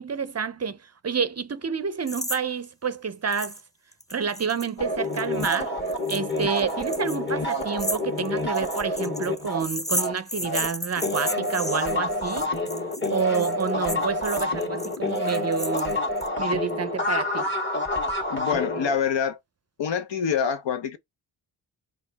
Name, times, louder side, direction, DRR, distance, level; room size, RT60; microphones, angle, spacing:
voice 1, 0.0-3.6 4.1-5.7 6.1-12.5 13.1-16.0 16.4-17.5, right 6 dB, 35° right, 0.5 m, -29 dB
sound 1, 2.1-2.4 2.6-2.7 3.3-3.6 3.9-16.3, left 1 dB, 10° left, 0.6 m, -34 dB
sound 2, 4.8-10.7 11.0-19.0, left 1 dB, 25° left, 1.5 m, -28 dB
voice 2, 18.3-19.4 19.8-21.0, left 7 dB, 70° left, 0.8 m, -26 dB
4.4 x 2.4 x 3.9 m
cardioid pair, 65°, 46 cm